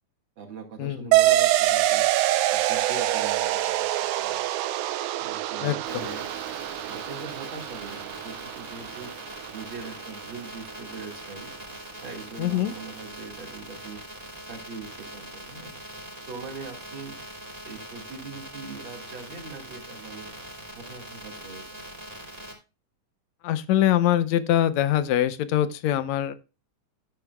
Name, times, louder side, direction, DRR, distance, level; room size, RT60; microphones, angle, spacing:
voice 1, 0.4-2.1 2.5-3.9 4.2-4.4 5.2-6.3 6.8-9.1 9.5-11.5 12.0-14.0 14.5-15.7 16.3-17.2 17.6-20.3 20.7-21.9, right 4 dB, 45° right, 4 dB, 2.2 m, -41 dB
sound 1, 1.1-10.1, right 15 dB, 80° right, 2.0 m, -25 dB
voice 2, 5.6-6.0 12.4-12.7 23.4-26.3, left 12 dB, 75° left, 13 dB, 1.8 m, -23 dB
sound 2, 5.8-22.6, right 1 dB, 15° right, 2.1 m, -42 dB
12.0 x 10.0 x 2.2 m, 0.30 s
omnidirectional pair, 3.6 m